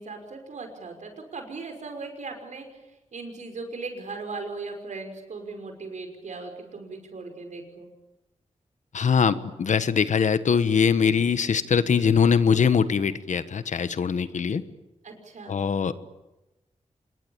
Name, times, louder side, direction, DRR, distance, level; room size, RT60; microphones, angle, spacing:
voice 1, 0.0-2.7 3.1-7.9 15.0-15.6, right 3 dB, 75° right, 5 dB, 5.8 m, -38 dB
voice 2, 8.9-14.6 15.5-16.0, left 6 dB, 75° left, 13 dB, 1.4 m, -22 dB
26.5 x 22.0 x 8.9 m, 0.99 s
wide cardioid pair, 85°, 13 cm